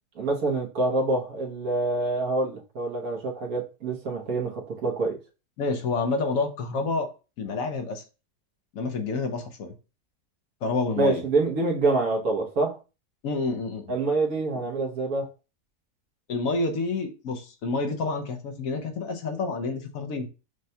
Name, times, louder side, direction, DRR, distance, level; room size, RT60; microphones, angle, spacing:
voice 1, 0.1-5.2 11.0-12.8 13.9-15.3, right 2 dB, 70° right, 0 dB, 1.4 m, -26 dB
voice 2, 5.6-7.1 7.4-8.0 8.7-9.7 10.6-11.2 13.2-13.9 16.3-20.3, left 3 dB, 65° left, 6 dB, 1.0 m, -28 dB
6.4 x 2.2 x 2.7 m, 0.31 s
omnidirectional pair, 1.6 m